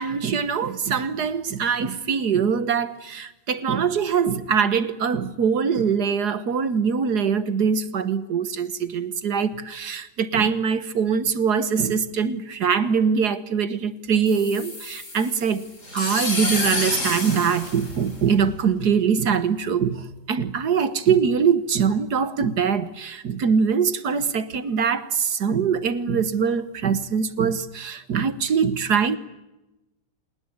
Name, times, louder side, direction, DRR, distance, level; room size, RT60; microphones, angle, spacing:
voice 1, 0.0-15.7 15.9-29.2, right 6 dB, 55° right, 1.6 m, -23 dB
sound 1, 14.3-18.6, left 2 dB, 35° left, 4.6 m, -29 dB
27.5 x 19.5 x 9.9 m
omnidirectional pair, 2.2 m